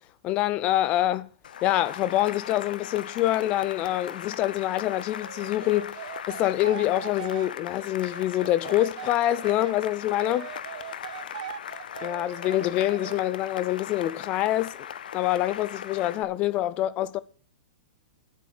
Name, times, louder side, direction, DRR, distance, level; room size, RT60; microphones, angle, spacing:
voice 1, 0.2-1.3 1.6-6.0 6.3-10.5 12.0-14.8 15.1-17.2, left 14 dB, 25° left, 0.5 m, -25 dB
Cheering / Applause, 1.4-16.2, left 9 dB, 80° left, 0.7 m, -39 dB
sound 1, 5.2-9.8 10.2-13.3, right 10 dB, 65° right, 1.0 m, -41 dB
10.0 x 8.2 x 6.1 m
hypercardioid pair, 160°, 5 cm